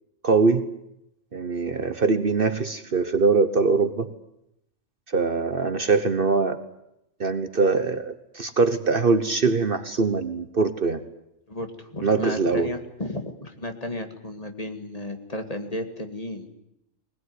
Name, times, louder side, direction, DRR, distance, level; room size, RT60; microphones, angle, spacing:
voice 1, 0.2-0.7 1.3-4.1 5.1-6.6 7.2-11.0 12.0-12.7, right 4 dB, 45° right, 10 dB, 1.2 m, -22 dB
voice 2, 11.5-16.5, left 1 dB, 30° left, 5 dB, 2.1 m, -33 dB
21.5 x 20.5 x 9.5 m, 0.82 s
omnidirectional pair, 1.3 m